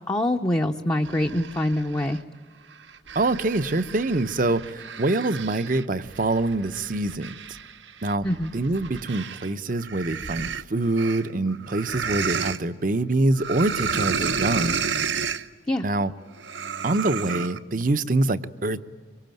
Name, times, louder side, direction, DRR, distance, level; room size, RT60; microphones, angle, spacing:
voice 1, 0.1-2.2 8.2-8.5 15.7-15.9, left 1 dB, 20° left, 2 dB, 0.7 m, -24 dB
sound 1, 1.0-2.2 2.7-9.5 9.8-12.6 13.4-15.5 16.4-17.6, right 6 dB, 80° right, 0.9 m, -31 dB
voice 2, 3.1-7.4 8.0-8.3 8.5-14.8 15.8-16.1 16.8-18.8, right 2 dB, 45° right, 12 dB, 0.8 m, -25 dB
25.0 x 23.5 x 9.1 m, 1.5 s
head